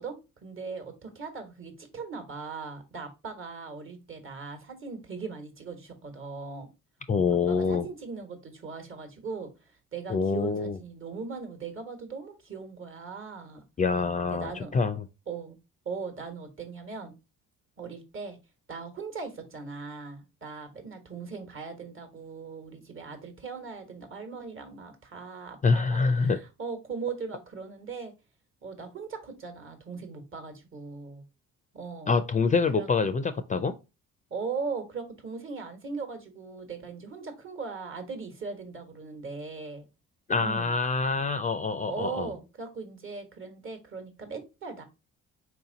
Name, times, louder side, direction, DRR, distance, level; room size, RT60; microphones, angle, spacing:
voice 1, 0.0-6.7 7.5-9.5 9.9-13.6 14.3-14.7 15.3-15.6 15.8-17.1 17.8-18.4 18.7-28.1 28.6-31.2 31.7-32.1 32.7-32.9 34.3-39.8 40.4-40.7 41.9-44.8, right 4 dB, 45° right, 1.3 m, -39 dB
voice 2, 7.1-7.9 10.1-10.8 13.8-15.0 25.6-26.4 32.1-33.7 40.3-42.3, left 4 dB, 25° left, 0.4 m, -26 dB
4.4 x 2.8 x 3.8 m
cardioid pair, 90°, 30 cm